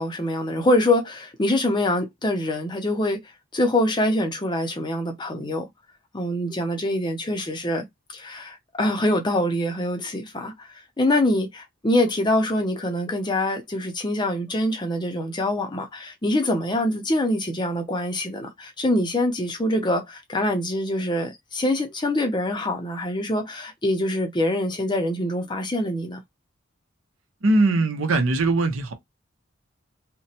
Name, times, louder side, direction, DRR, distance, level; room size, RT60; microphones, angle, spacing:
voice 1, 0.0-3.2 3.5-5.7 6.1-7.8 8.1-26.2, left 1 dB, 20° left, 0.5 m, -24 dB
voice 2, 27.4-28.9, right 2 dB, 75° right, 0.7 m, -20 dB
2.9 x 2.1 x 2.8 m
head